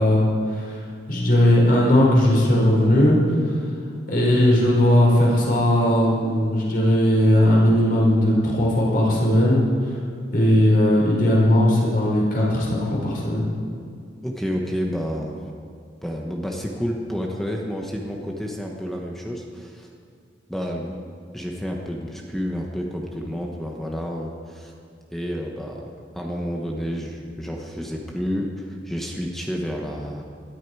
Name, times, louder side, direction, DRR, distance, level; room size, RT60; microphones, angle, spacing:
voice 1, 0.0-3.2 4.1-9.7 10.3-13.5, left 1 dB, 50° left, -4 dB, 5.1 m, -18 dB
voice 2, 14.2-15.4 16.0-19.9 20.5-21.0 21.3-24.7 25.1-30.2, equal, ahead, 0 dB, 1.1 m, -30 dB
20.0 x 13.0 x 4.8 m, 2.3 s
head